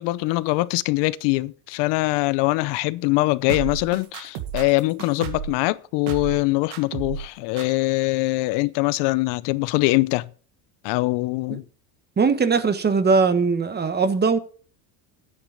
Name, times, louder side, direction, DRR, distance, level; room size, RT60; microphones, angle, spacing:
voice 1, 0.0-10.3 10.8-11.6, left 21 dB, 65° left, 0.7 m, -23 dB
sound 1, 3.5-5.6 6.1-6.4 6.7-7.3 7.6-7.7, right 9 dB, 80° right, 2.0 m, -32 dB
voice 2, 12.2-14.4, right 4 dB, 20° right, 1.2 m, -20 dB
9.8 x 9.5 x 5.1 m
supercardioid pair, 115°, 46 cm